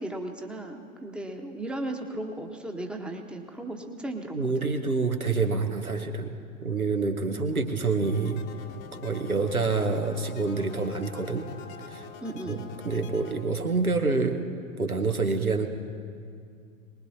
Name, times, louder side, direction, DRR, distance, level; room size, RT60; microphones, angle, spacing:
voice 1, 0.0-4.7 7.3-7.4 12.2-12.6, right 1 dB, ahead, 2 dB, 1.1 m, -36 dB
voice 2, 4.3-6.4 6.6-8.4 8.9-11.5 11.8-12.1 12.5-12.6 12.8-15.7, right 4 dB, 90° right, 5 dB, 1.3 m, -27 dB
sound 1, 8.0-13.4, left 6 dB, 40° left, 1.2 m, -45 dB
23.0 x 20.0 x 2.8 m, 2.3 s
figure-of-eight pair, 95°, 42 cm